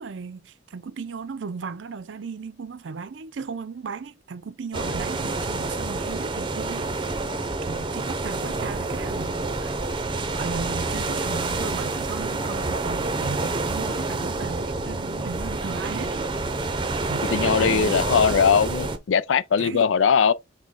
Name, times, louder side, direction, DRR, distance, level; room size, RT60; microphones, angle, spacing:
voice 1, 0.0-7.3 7.6-9.7 10.3-16.3 17.1-18.1 19.6-19.9, right 5 dB, 70° right, 0.5 m, -36 dB
sound 1, 4.7-19.0, right 3 dB, 25° right, 0.6 m, -28 dB
voice 2, 17.3-20.3, left 6 dB, 80° left, 0.4 m, -20 dB
6.1 x 2.2 x 3.7 m
head